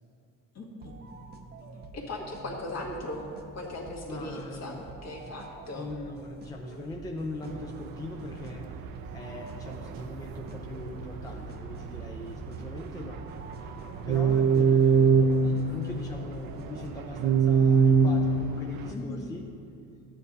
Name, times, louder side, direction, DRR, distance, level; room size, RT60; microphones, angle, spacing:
voice 1, 0.5-0.9 1.7-5.9 18.9-19.2, left 1 dB, 50° left, -2 dB, 1.8 m, -38 dB
sound 1, 0.8-17.3, right 3 dB, 30° right, 0.7 m, -48 dB
voice 2, 4.1-4.9 5.7-8.7 9.1-13.3 14.0-15.2 15.4-19.4, left 2 dB, 10° left, 0 dB, 0.5 m, -40 dB
sound 2, 7.4-18.9, right 5 dB, 85° right, 0.6 m, -26 dB
12.5 x 9.1 x 2.7 m, 2.5 s
cardioid pair, 135°, 35 cm